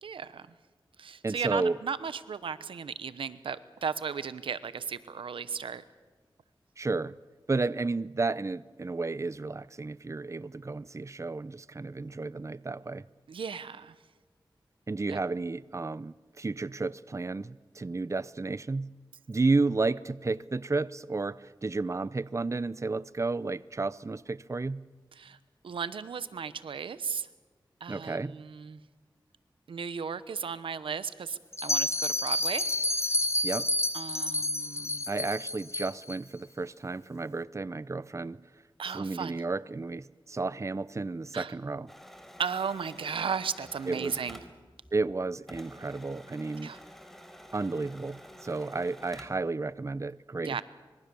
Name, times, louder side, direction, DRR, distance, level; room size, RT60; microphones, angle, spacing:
voice 1, 0.0-0.5 1.0-5.8 13.3-14.0 15.1-15.2 25.2-25.4 25.6-27.3 27.8-28.8 29.7-32.7 33.0-33.2 33.9-35.1 38.8-39.4 41.3-41.5 42.4-44.4 46.6-46.8 50.4-50.6, right 6 dB, 90° right, 0.9 m, -35 dB
voice 2, 1.2-1.8 6.8-7.2 7.5-13.0 14.9-18.9 19.3-24.8 27.9-28.4 33.4-33.7 35.1-38.4 38.9-41.9 43.9-44.2 44.9-46.8 47.5-50.6, right 3 dB, 35° right, 0.6 m, -32 dB
Bell, 31.5-36.2, left 1 dB, 30° left, 1.4 m, -29 dB
sound 1, 41.9-45.2 45.5-49.5, equal, 5° left, 4.3 m, -50 dB
25.5 x 22.0 x 7.0 m
cardioid pair, 40°, 9 cm